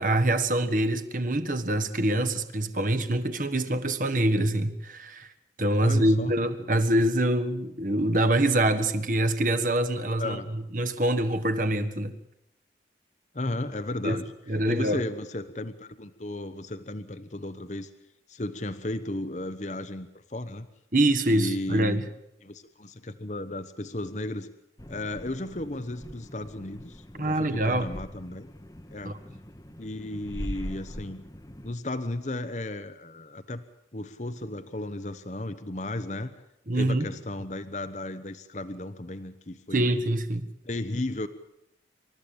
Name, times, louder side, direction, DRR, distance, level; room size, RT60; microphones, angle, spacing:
voice 1, 0.0-5.3 5.6-12.2 14.0-14.2 14.5-15.0 20.9-22.0 27.2-27.9 29.0-29.1 36.7-37.0 39.7-40.5, right 1 dB, 45° right, 1.5 m, -25 dB
voice 2, 5.8-6.3 10.2-10.5 13.3-14.2 14.7-17.9 18.3-20.7 21.3-22.0 22.4-24.5 24.9-28.5 28.9-29.1 29.8-31.2 31.6-33.6 33.9-36.3 36.7-40.0 40.6-41.3, left 1 dB, 40° left, 0.9 m, -34 dB
sound 1, 24.8-31.7, equal, 20° left, 1.1 m, -42 dB
27.5 x 13.5 x 8.7 m
head